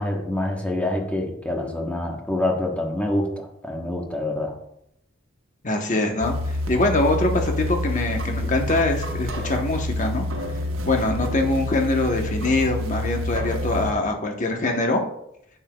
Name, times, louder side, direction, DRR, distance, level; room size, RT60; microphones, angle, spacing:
voice 1, 0.0-4.5, left 1 dB, 5° left, 1 dB, 1.0 m, -26 dB
voice 2, 5.6-6.3 6.7-10.3 10.8-15.0, left 2 dB, 40° left, 3 dB, 1.0 m, -23 dB
sound 1, 6.2-13.9, left 1 dB, 75° right, 1.0 m, -28 dB
9.7 x 6.7 x 2.3 m, 0.78 s
head